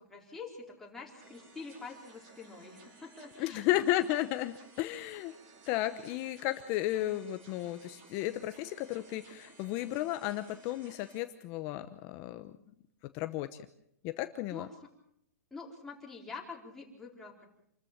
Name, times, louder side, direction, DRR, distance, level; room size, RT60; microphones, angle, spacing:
voice 1, 0.1-3.7 14.5-14.7 15.5-17.5, left 4 dB, 5° left, -2 dB, 4.1 m, -46 dB
sound 1, 1.2-11.2, right 3 dB, 35° right, 5.1 m, -57 dB
voice 2, 3.4-5.3 5.7-12.5 13.1-13.5 14.0-14.7, left 15 dB, 30° left, 9 dB, 0.9 m, -33 dB
27.5 x 14.0 x 7.4 m, 0.74 s
hypercardioid pair, 155°, 8 cm